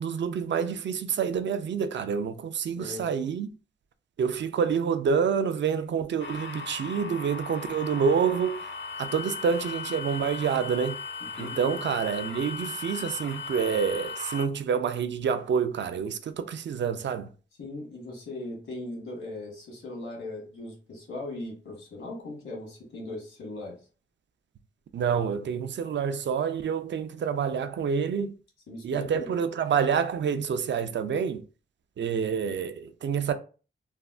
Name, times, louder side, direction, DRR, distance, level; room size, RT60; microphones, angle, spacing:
voice 1, 0.0-3.5 4.2-8.6 9.0-11.0 11.4-17.3 24.9-28.3 28.8-31.4 32.0-33.3, right 6 dB, 60° right, 0.4 m, -27 dB
sound 1, 6.2-14.5, left 4 dB, 65° left, 0.6 m, -37 dB
voice 2, 11.2-11.7 17.6-23.8 28.7-29.3, left 2 dB, 80° left, 1.5 m, -39 dB
3.3 x 2.0 x 2.4 m
cardioid pair, 60°, 21 cm